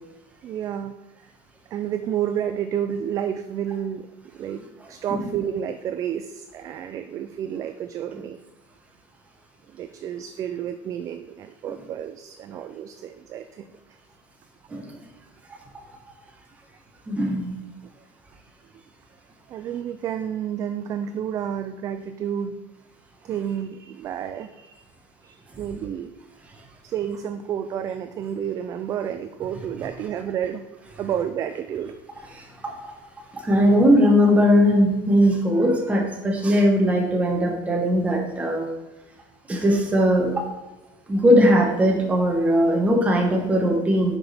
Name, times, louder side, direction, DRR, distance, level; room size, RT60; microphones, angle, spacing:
voice 1, 0.4-0.9 1.7-4.1 4.3-4.6 4.9-8.4 9.7-13.7 19.5-22.6 23.2-24.8 25.2-26.1 26.8-30.6 31.0-32.0, right 9 dB, 30° right, 9 dB, 0.3 m, -30 dB
voice 2, 17.1-17.5 32.4-32.9 33.3-38.7 39.5-40.4 41.1-44.2, equal, 15° right, 1 dB, 1.2 m, -19 dB
6.5 x 5.9 x 4.2 m, 1.1 s
cardioid pair, 165°, 11 cm